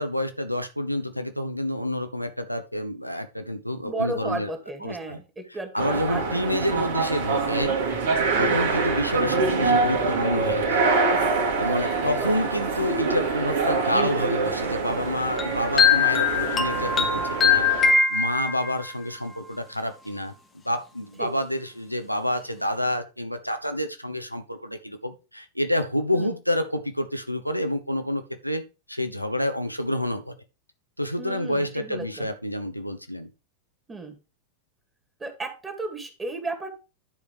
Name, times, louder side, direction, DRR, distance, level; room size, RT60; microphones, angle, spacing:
voice 1, 0.0-4.5 4.8-5.2 5.7-7.8 8.4-10.8 11.6-20.3 20.6-30.3 31.0-33.3, left 1 dB, 90° left, 1.1 m, -28 dB
voice 2, 3.8-6.4 12.0-12.3 21.2-21.3 26.1-26.4 31.2-32.3 33.9-34.2 35.2-36.7, right 2 dB, 15° right, 2.2 m, -34 dB
sound 1, 5.8-18.0, right 4 dB, 60° right, 2.0 m, -25 dB
sound 2, 15.4-18.9, left 5 dB, 20° left, 1.2 m, -21 dB
11.0 x 4.9 x 4.7 m
figure-of-eight pair, 90°, 0 cm